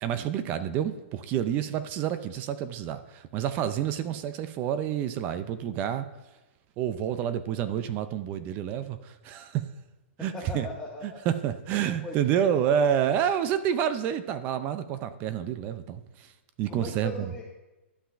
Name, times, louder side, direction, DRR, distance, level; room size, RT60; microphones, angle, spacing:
voice 1, 0.0-6.1 6.8-9.6 10.2-10.7 11.0-16.3 16.6-17.3, right 9 dB, 25° right, 11 dB, 0.4 m, -28 dB
voice 2, 10.3-11.2 11.8-12.8 16.7-17.5, left 2 dB, 5° left, -5 dB, 0.9 m, -39 dB
12.0 x 5.6 x 2.5 m, 1.1 s
hypercardioid pair, 150°, 7 cm